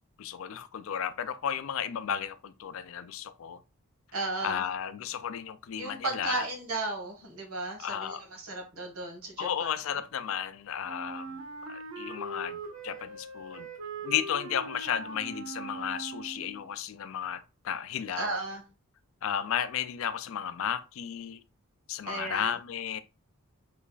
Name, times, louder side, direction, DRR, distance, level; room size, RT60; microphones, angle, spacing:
voice 1, 0.2-3.6 4.4-6.4 7.8-8.2 9.4-11.4 11.7-13.7 14.0-18.4 19.2-21.4 21.9-23.0, left 9 dB, 70° left, 0.3 m, -34 dB
voice 2, 4.1-4.6 5.8-9.7 18.2-18.6 22.0-22.5, right 2 dB, 90° right, 1.2 m, -35 dB
Wind instrument woodwind instrument, 10.8-16.6, right 3 dB, 75° right, 0.6 m, -41 dB
3.1 x 2.4 x 3.8 m
head